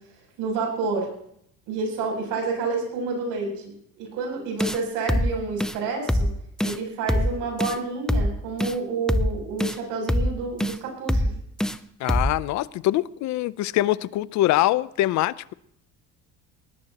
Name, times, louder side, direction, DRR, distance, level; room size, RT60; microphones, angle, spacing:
voice 1, 0.4-1.1 1.7-6.3 6.6-11.2, right 4 dB, 80° right, 1 dB, 7.9 m, -29 dB
sound 1, 4.6-4.8 5.1-5.3 5.6-5.8 6.1-6.3 6.6-6.8 7.1-7.3 7.6-7.8 8.1-8.3 8.6-8.7 9.1-9.3 9.6-9.8 10.1-10.3 10.6-10.8 11.1-11.3 11.6-11.8 12.1-12.3, equal, ahead, 0.6 m, -23 dB
voice 2, 12.0-15.5, left 15 dB, 60° left, 18 dB, 0.6 m, -23 dB
21.0 x 19.5 x 3.0 m, 0.72 s
cardioid pair, 125°, 33 cm